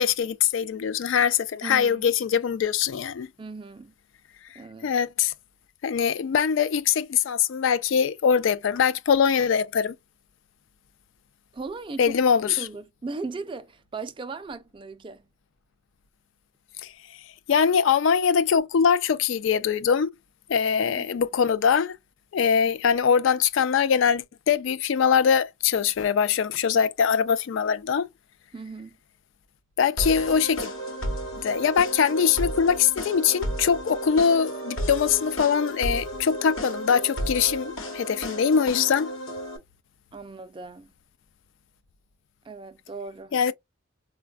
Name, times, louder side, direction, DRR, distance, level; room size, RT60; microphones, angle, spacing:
voice 1, 0.0-3.3 4.8-5.3 5.8-9.9 12.0-12.7 16.8-16.9 17.5-20.1 20.5-22.0 22.3-28.1 29.8-30.7 31.4-39.1 43.3-43.5, left 7 dB, 70° left, 0.3 m, -22 dB
voice 2, 1.6-2.1 3.4-3.9 4.6-4.9 11.5-12.2 12.4-15.3 20.8-21.1 28.5-29.0 40.1-40.9 42.4-43.5, right 3 dB, 25° right, 0.3 m, -38 dB
sound 1, 30.0-39.6, equal, 85° left, 1.0 m, -33 dB
4.0 x 2.2 x 2.2 m
head